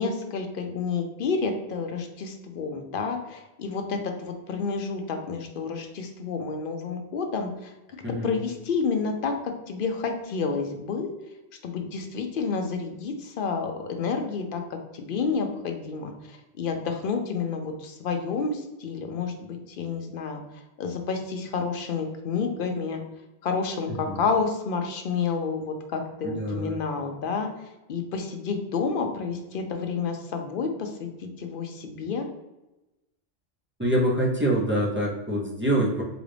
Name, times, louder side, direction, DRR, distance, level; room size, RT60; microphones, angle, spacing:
voice 1, 0.0-7.7 8.2-9.3 9.7-11.1 11.6-20.4 20.8-23.0 23.4-27.5 27.9-32.3, left 5 dB, 60° left, 4 dB, 0.7 m, -30 dB
voice 2, 26.2-26.8 33.8-36.0, right 1 dB, 15° right, -4 dB, 0.6 m, -25 dB
3.9 x 2.5 x 3.3 m, 1.0 s
omnidirectional pair, 1.1 m